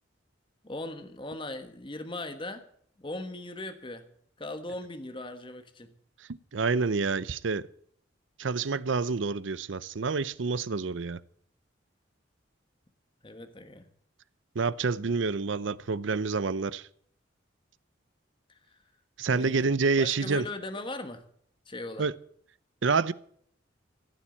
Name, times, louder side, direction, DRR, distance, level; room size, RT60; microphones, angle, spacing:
voice 1, 0.6-2.6 3.0-4.1 4.4-5.9 13.2-13.9 18.5-18.6 19.3-19.7 20.0-21.2 21.7-22.1, left 2 dB, 25° left, 1.2 m, -39 dB
voice 2, 6.3-7.7 8.4-11.2 14.5-16.8 19.2-20.4 22.0-22.1 22.8-23.1, right 4 dB, 75° right, 0.6 m, -28 dB
15.5 x 7.3 x 8.6 m
head